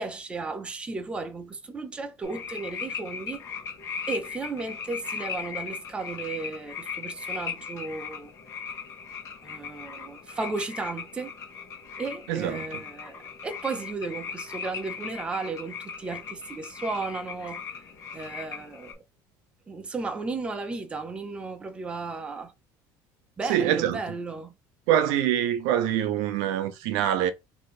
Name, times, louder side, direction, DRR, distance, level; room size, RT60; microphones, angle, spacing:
voice 1, 0.0-3.4 4.1-8.3 9.4-11.3 12.0-17.6 18.1-19.0 19.7-22.5 23.4-24.6, right 3 dB, 15° right, 0.6 m, -34 dB
sound 1, 2.2-18.9, left 6 dB, 40° left, 1.5 m, -38 dB
voice 2, 12.3-12.6 23.5-24.0 24.9-27.3, right 11 dB, 80° right, 0.7 m, -24 dB
3.2 x 2.8 x 4.2 m
cardioid pair, 165°, 8 cm